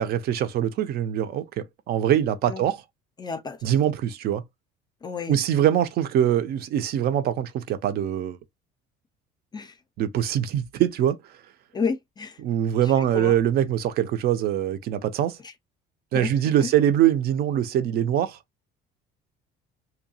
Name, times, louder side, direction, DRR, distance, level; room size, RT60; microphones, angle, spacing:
voice 1, 0.0-2.8 3.6-4.4 5.3-8.4 10.0-11.2 12.4-15.4 16.1-18.4, right 10 dB, 55° right, 0.5 m, -23 dB
voice 2, 3.2-3.7 5.0-5.4 9.5-9.8 11.7-12.4 12.8-13.4 15.4-15.5 16.1-16.3 16.6-16.7, left 5 dB, 20° left, 0.4 m, -31 dB
2.7 x 2.3 x 2.7 m
cardioid pair, 130°, 20 cm